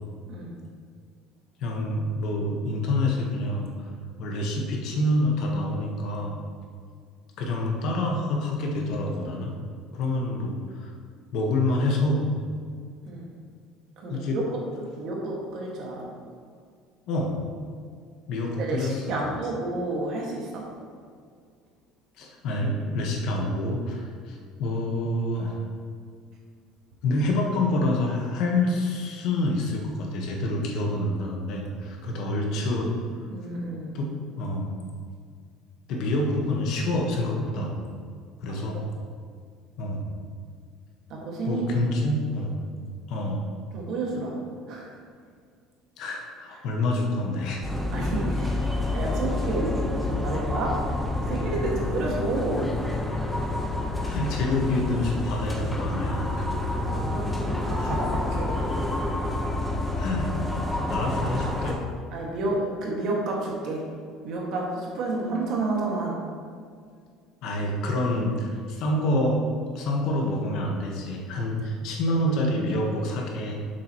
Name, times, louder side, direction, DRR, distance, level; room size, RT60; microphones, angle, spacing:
voice 1, 1.6-3.7 4.2-6.4 7.4-9.5 9.9-10.9 11.3-12.3 14.1-14.4 17.1-17.4 18.3-19.2 22.2-25.6 27.0-32.9 33.9-34.7 35.9-37.8 38.4-38.8 39.8-40.1 41.4-42.6 43.1-43.4 46.0-47.6 54.0-56.4 57.8-58.0 60.0-60.3 60.9-61.8 67.4-69.4 69.7-73.5, left 1 dB, 50° left, 0 dB, 1.3 m, -27 dB
voice 2, 14.0-14.6 15.0-16.1 18.6-20.7 33.3-33.9 38.5-38.8 41.1-42.2 43.7-44.4 44.7-45.0 47.9-48.6 48.9-50.8 51.2-52.8 56.9-58.6 62.1-63.9 64.2-66.2, right 2 dB, 45° right, -2 dB, 1.8 m, -30 dB
sound 1, 47.6-61.7, left 2 dB, 5° left, 0.9 m, -28 dB
11.0 x 7.4 x 3.0 m, 2.1 s
cardioid pair, 180°, 0 cm